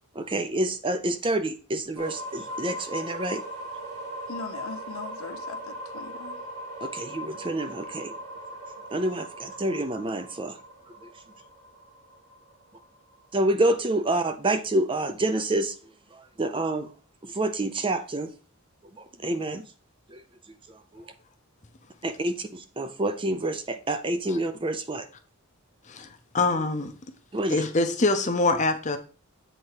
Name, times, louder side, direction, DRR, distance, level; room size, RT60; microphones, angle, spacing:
voice 1, 0.1-3.4 6.8-8.1 8.9-10.6 13.3-15.8 16.1-16.9 17.2-18.3 19.0-19.6 20.1-20.2 20.7-21.0 22.0-25.1 27.3-27.6, right 1 dB, 20° right, 0.5 m, -28 dB
sound 1, 2.0-13.8, equal, 75° right, 2.8 m, -39 dB
voice 2, 4.3-6.4, left 4 dB, 70° left, 0.7 m, -40 dB
voice 3, 25.9-26.9 27.5-29.0, left 3 dB, 35° left, 0.8 m, -25 dB
7.8 x 4.3 x 4.8 m
head